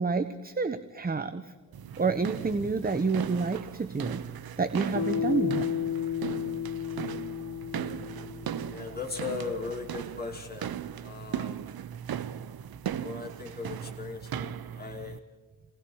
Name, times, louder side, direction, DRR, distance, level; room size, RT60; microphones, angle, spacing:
voice 1, 0.0-1.5 2.0-4.2 4.6-5.7, right 4 dB, 25° right, 10 dB, 1.0 m, -29 dB
sound 1, 1.7-15.2, right 9 dB, 75° right, 0.8 m, -38 dB
Bass guitar, 4.9-9.3, left 9 dB, 75° left, 3.4 m, -33 dB
voice 2, 8.7-10.7 11.0-11.6 13.0-15.2, left 5 dB, 25° left, -2 dB, 4.7 m, -38 dB
29.0 x 19.5 x 4.7 m, 1.3 s
wide cardioid pair, 95°, 36 cm